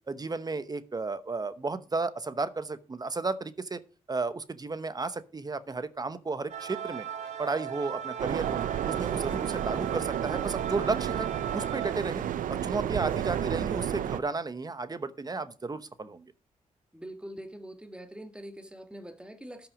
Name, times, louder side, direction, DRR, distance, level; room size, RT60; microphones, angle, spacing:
voice 1, 0.1-3.8 4.1-7.0 7.4-8.6 8.9-11.3 11.5-12.2 12.5-16.3, right 3 dB, 30° right, 13 dB, 0.9 m, -33 dB
sound 1, 6.5-11.9, right 9 dB, 60° right, 1.5 m, -38 dB
sound 2, 8.2-14.2, right 10 dB, 80° right, 0.7 m, -31 dB
voice 2, 16.9-19.7, right 1 dB, 5° right, 7 dB, 1.7 m, -44 dB
12.5 x 6.0 x 4.9 m, 0.35 s
cardioid pair, 80°, 14 cm